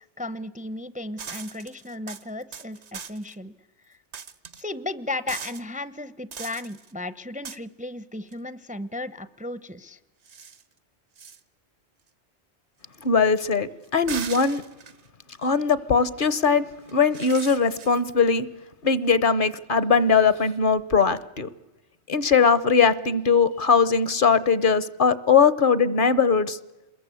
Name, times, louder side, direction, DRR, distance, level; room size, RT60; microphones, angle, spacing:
voice 1, 0.0-3.5 3.9-4.0 4.6-10.0, left 2 dB, 10° right, 15 dB, 0.6 m, -35 dB
sound 1, 1.2-3.4 4.1-4.6 5.3-5.6 6.3-6.9 7.5-7.6 8.3-8.4 10.3-10.6 11.2-11.4 13.9-15.1 16.9-18.2, right 6 dB, 75° right, 1.4 m, -39 dB
voice 2, 13.0-14.6 15.4-16.7 16.9-18.5 18.8-21.5 22.1-26.6, left 5 dB, 50° left, 17 dB, 1.2 m, -20 dB
27.5 x 21.5 x 8.3 m, 1.0 s
omnidirectional pair, 1.2 m